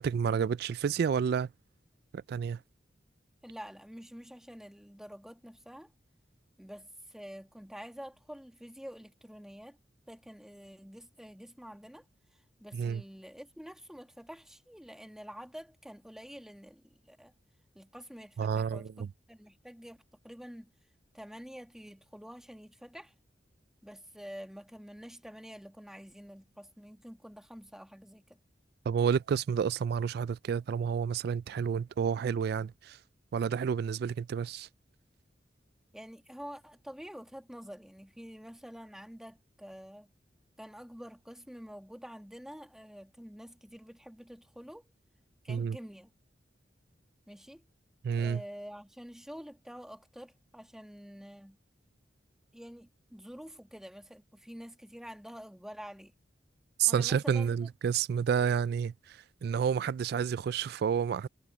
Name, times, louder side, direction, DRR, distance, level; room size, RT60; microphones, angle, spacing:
voice 1, 0.0-1.5 2.1-2.6 12.7-13.0 18.4-19.1 28.9-33.0 33.3-34.7 45.5-45.8 48.0-48.4 56.8-61.3, right 7 dB, 60° right, 0.3 m, -30 dB
voice 2, 3.4-5.9 6.6-9.8 10.1-12.0 12.6-17.3 17.7-20.0 20.2-20.7 21.1-23.1 23.8-28.4 35.9-40.1 40.6-44.8 45.4-46.1 47.3-47.6 48.1-51.6 52.5-56.1 56.8-57.5, equal, 5° right, 1.5 m, -48 dB
head